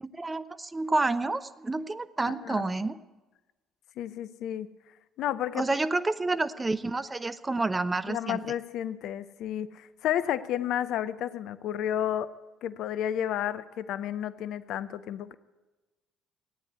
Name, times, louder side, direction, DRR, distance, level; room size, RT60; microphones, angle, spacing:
voice 1, 0.0-3.0 5.5-8.4, right 2 dB, 20° right, 12 dB, 0.8 m, -29 dB
voice 2, 2.2-2.7 4.0-4.7 5.2-5.7 8.1-12.3 12.6-15.4, left 10 dB, 60° left, 15 dB, 0.6 m, -31 dB
15.5 x 9.7 x 9.6 m, 1.2 s
figure-of-eight pair, 50°, 0 cm